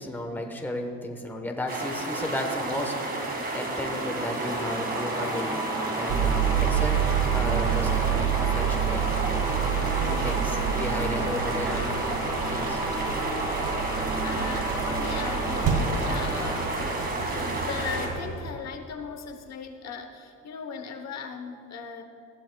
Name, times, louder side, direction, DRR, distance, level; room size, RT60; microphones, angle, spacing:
voice 1, 0.0-2.9 3.5-5.6 5.9-7.0 7.3-9.4 9.7-9.8 10.1-11.9 12.5-12.8, left 1 dB, 5° left, 3 dB, 1.0 m, -34 dB
sound 1, 1.7-18.1, right 2 dB, 30° right, 1.9 m, -31 dB
sound 2, 3.6-18.2, right 1 dB, 10° right, 1.6 m, -34 dB
sound 3, 6.1-18.5, right 9 dB, 85° right, 1.4 m, -29 dB
voice 2, 10.0-10.3 12.4-12.5 14.2-17.0 17.3-22.0, left 6 dB, 55° left, 5 dB, 1.0 m, -38 dB
19.5 x 14.5 x 2.2 m, 2.5 s
cardioid pair, 140°, 31 cm